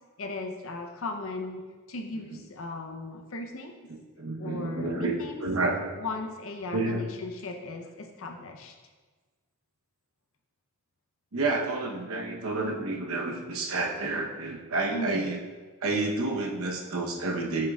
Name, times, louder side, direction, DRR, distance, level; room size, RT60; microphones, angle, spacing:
voice 1, 0.2-1.6 1.9-3.7 4.4-5.4 6.0-8.7 14.9-15.3, left 2 dB, 70° left, 3 dB, 0.7 m, -37 dB
voice 2, 3.9-5.1 5.4-5.9 6.7-7.1 11.3-15.4 15.8-17.7, right 2 dB, 75° right, 0 dB, 0.9 m, -30 dB
7.4 x 6.6 x 2.4 m, 1.4 s
head